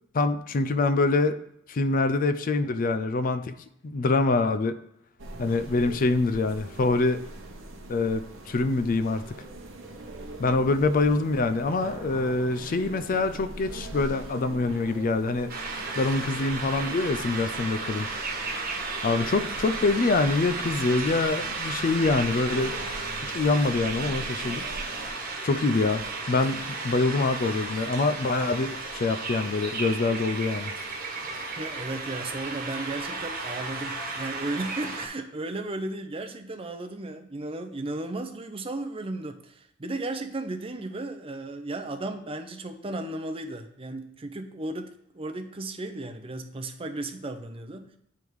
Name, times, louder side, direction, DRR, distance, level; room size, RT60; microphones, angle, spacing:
voice 1, 0.1-1.4 1.7-3.5 3.8-4.7 5.4-7.2 7.9-9.2 10.4-15.5 15.9-18.1 19.0-22.7 23.3-24.6 25.4-30.7, left 3 dB, 40° left, 11 dB, 0.4 m, -25 dB
sound 1, 5.2-25.1, right 2 dB, 70° right, 1.0 m, -42 dB
sound 2, 15.5-35.1, right 3 dB, 45° right, 1.3 m, -34 dB
voice 2, 31.5-47.9, right 2 dB, 30° right, 6 dB, 0.6 m, -35 dB
9.3 x 3.5 x 4.7 m, 0.76 s
head